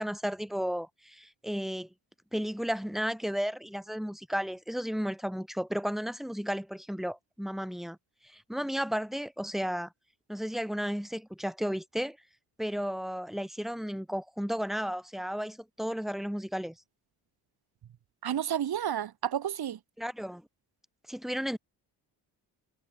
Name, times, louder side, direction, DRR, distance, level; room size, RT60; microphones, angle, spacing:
voice 1, 0.0-1.9 2.3-8.0 8.2-9.9 10.3-12.2 12.6-16.8 20.0-20.5 21.1-21.6, equal, ahead, 6.2 m, -33 dB
voice 2, 18.2-19.8, right 10 dB, 65° right, 5.6 m, -31 dB
cardioid pair, 80°, 40 cm